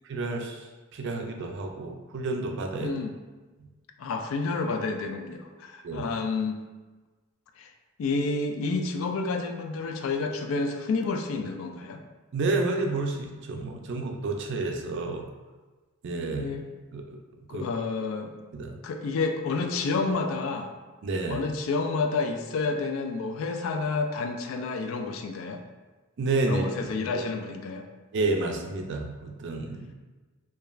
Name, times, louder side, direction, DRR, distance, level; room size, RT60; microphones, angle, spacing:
voice 1, 0.1-0.6 0.9-2.9 5.8-6.1 12.3-15.3 16.0-16.5 16.9-17.0 17.5-17.7 18.5-18.8 21.0-21.5 26.2-26.9 27.1-27.2 28.1-29.9, right 3 dB, 60° right, 3 dB, 0.4 m, -30 dB
voice 2, 2.8-3.1 4.0-6.6 7.6-7.7 8.0-12.0 16.4-16.7 17.5-18.3 18.8-20.7 21.3-25.6 26.5-27.8, left 4 dB, 75° left, 5 dB, 0.3 m, -29 dB
2.3 x 2.3 x 3.0 m, 1.3 s
head